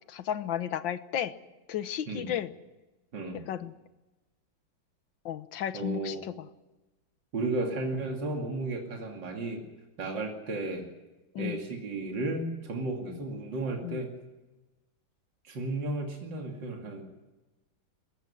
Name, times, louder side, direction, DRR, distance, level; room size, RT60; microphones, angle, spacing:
voice 1, 0.1-1.3 1.7-2.5 3.3-3.7 5.3-6.5 11.4-11.6 13.1-13.2 13.8-14.0, left 10 dB, 80° left, 13 dB, 1.7 m, -33 dB
voice 2, 5.7-6.2 7.3-9.7 10.0-10.9 11.4-14.1 15.5-17.0, right 2 dB, 65° right, 1 dB, 3.2 m, -33 dB
21.0 x 15.5 x 9.8 m, 1.1 s
omnidirectional pair, 2.1 m